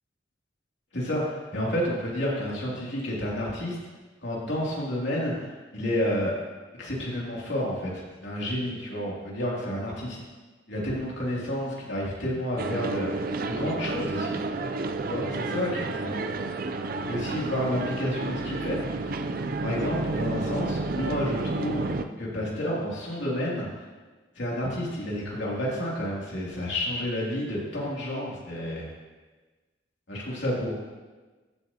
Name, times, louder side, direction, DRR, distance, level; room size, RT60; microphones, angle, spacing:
voice 1, 0.9-3.8 4.2-6.3 6.8-10.2 10.7-14.4 15.0-16.4 17.1-19.0 19.6-23.7 24.4-28.8 30.1-30.8, left 1 dB, 85° left, -5 dB, 2.8 m, -30 dB
sound 1, 12.6-22.1, right 3 dB, 50° right, 0.4 m, -31 dB
14.0 x 7.4 x 2.9 m, 1.3 s
head